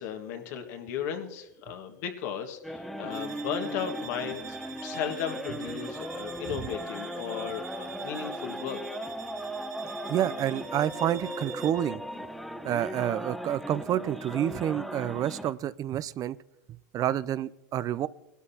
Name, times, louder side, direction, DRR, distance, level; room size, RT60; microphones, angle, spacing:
voice 1, 0.0-4.6 4.8-8.8, left 8 dB, 65° left, 5 dB, 1.7 m, -35 dB
sound 1, 2.6-15.5, equal, ahead, 0.9 m, -38 dB
sound 2, 3.1-11.9, right 9 dB, 75° right, 1.5 m, -46 dB
voice 2, 10.0-12.0 12.6-16.4 16.9-18.1, right 11 dB, 40° right, 17 dB, 0.5 m, -29 dB
21.0 x 12.5 x 2.8 m, 0.94 s
hypercardioid pair, 90°, 10 cm